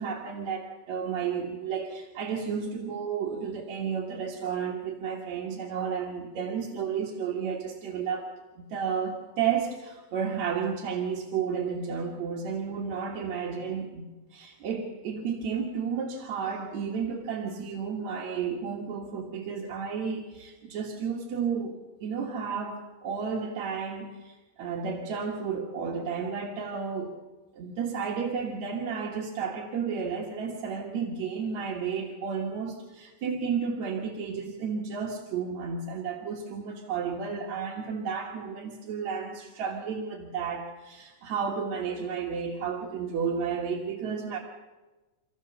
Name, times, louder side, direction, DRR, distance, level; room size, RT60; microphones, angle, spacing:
voice 1, 0.0-8.3 8.6-14.0 14.3-27.1 27.6-44.4, right 6 dB, 70° right, -1 dB, 2.9 m, -32 dB
26.5 x 14.5 x 6.8 m, 1.2 s
omnidirectional pair, 3.4 m